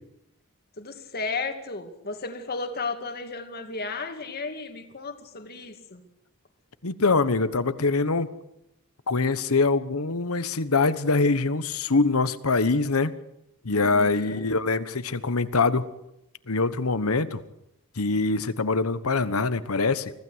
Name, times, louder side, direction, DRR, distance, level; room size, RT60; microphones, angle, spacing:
voice 1, 0.8-6.0 13.7-14.4, left 3 dB, 45° left, 6 dB, 2.3 m, -34 dB
voice 2, 6.8-8.3 9.1-13.1 13.6-15.9 16.5-17.4 18.0-20.1, left 3 dB, 80° left, 14 dB, 1.2 m, -24 dB
24.5 x 16.0 x 8.0 m, 0.85 s
head